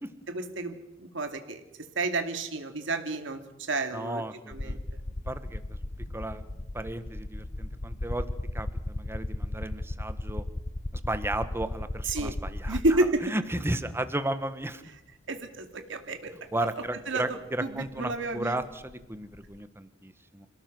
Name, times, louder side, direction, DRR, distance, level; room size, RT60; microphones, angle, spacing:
voice 1, 0.3-1.6 2.0-4.8 12.0-12.3 12.7-13.3 15.3-16.3 16.6-16.7 17.1-18.6, right 2 dB, 70° right, 6 dB, 2.5 m, -31 dB
voice 2, 3.9-4.8 5.3-5.8 6.1-6.4 6.7-8.3 8.5-10.4 11.0-12.8 13.2-14.8 16.5-20.5, right 1 dB, 10° right, 11 dB, 1.4 m, -34 dB
sound 1, 4.5-13.3 14.4-14.5 16.7-16.8 17.0-19.6, left 1 dB, 35° left, 0.8 m, -36 dB
27.5 x 17.5 x 6.2 m, 0.92 s
head